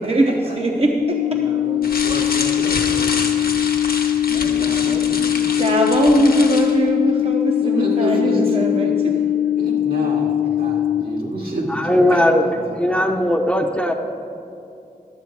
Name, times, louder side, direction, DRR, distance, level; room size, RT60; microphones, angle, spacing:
voice 1, 0.0-1.9 4.3-5.3 5.6-8.9 12.1-12.2, right 1 dB, 40° right, 0 dB, 0.8 m, -21 dB
sound 1, 1.0-11.0, left 11 dB, 60° left, 0.5 m, -21 dB
sound 2, 1.8-6.8, left 3 dB, 80° left, 0.9 m, -28 dB
voice 2, 2.0-3.6 4.8-5.2 7.6-8.9 9.6-12.7 13.1-13.2, right 1 dB, 80° right, -3 dB, 2.0 m, -29 dB
voice 3, 11.7-12.4 12.8-13.9, left 1 dB, 5° left, 3 dB, 0.7 m, -18 dB
12.0 x 7.4 x 4.6 m, 2.6 s
wide cardioid pair, 75°, 15 cm